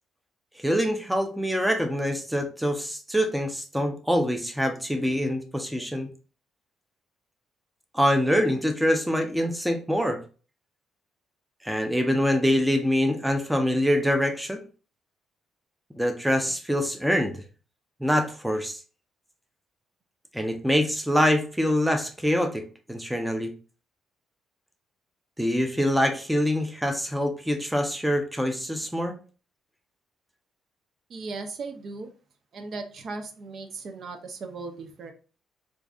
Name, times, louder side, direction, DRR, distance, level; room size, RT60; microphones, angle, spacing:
voice 1, 0.6-6.1 7.9-10.2 11.6-14.6 16.0-17.4 18.0-18.8 20.3-22.6 22.9-23.5 25.4-29.2, equal, 5° right, 5 dB, 0.6 m, -25 dB
voice 2, 31.1-32.1 32.5-35.1, right 3 dB, 55° right, 6 dB, 0.6 m, -37 dB
4.5 x 2.6 x 2.4 m, 0.37 s
cardioid pair, 90°, 0 cm